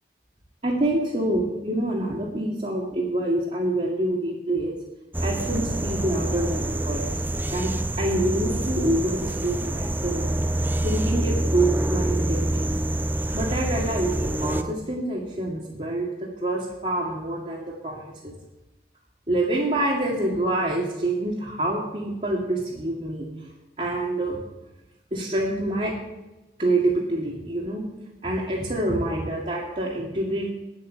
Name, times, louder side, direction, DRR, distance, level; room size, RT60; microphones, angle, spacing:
voice 1, 0.6-4.7 5.2-7.2 7.5-10.3 10.8-12.8 13.3-16.1 16.4-18.3 19.3-23.3 23.8-24.4 25.1-25.9 26.6-27.8 28.2-30.5, right 1 dB, 40° right, -5 dB, 2.0 m, -26 dB
sound 1, 5.1-14.6, right 1 dB, 10° right, 0.5 m, -26 dB
9.8 x 8.6 x 7.5 m, 1.0 s
head